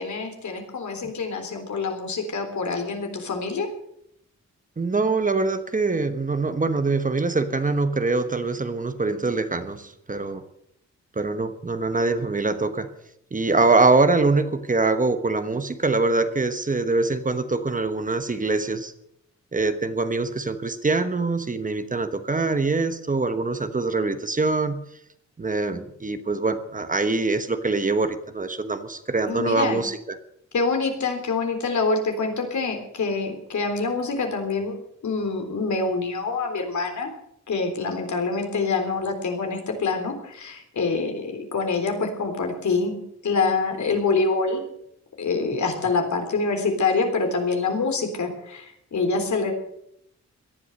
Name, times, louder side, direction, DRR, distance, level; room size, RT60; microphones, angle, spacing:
voice 1, 0.0-3.7 29.3-29.8 30.5-34.8 35.0-37.1 37.5-43.0 43.2-44.6 45.2-49.5, left 4 dB, 75° left, 4 dB, 3.7 m, -26 dB
voice 2, 4.8-10.4 11.2-12.9 13.3-18.9 19.5-24.8 25.4-30.2, right 3 dB, 25° right, 9 dB, 1.2 m, -24 dB
17.5 x 12.0 x 6.6 m, 0.75 s
wide cardioid pair, 130°, 29 cm